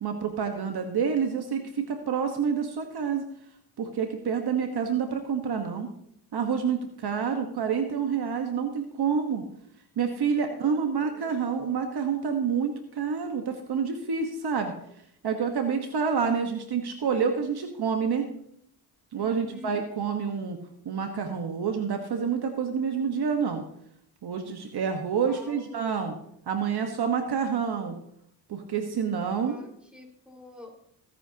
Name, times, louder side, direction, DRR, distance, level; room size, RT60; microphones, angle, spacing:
voice 1, 0.0-3.2 3.8-5.9 6.3-9.4 10.0-14.7 15.2-18.3 19.1-20.6 20.8-23.6 24.2-26.1 26.5-28.0 28.5-29.6, right 6 dB, 60° right, 5 dB, 1.4 m, -28 dB
voice 2, 10.4-11.4 16.1-16.6 19.1-19.8 25.2-26.2 29.4-30.9, left 1 dB, ahead, 0 dB, 4.7 m, -48 dB
20.0 x 10.0 x 2.9 m, 0.73 s
cardioid pair, 70°, 43 cm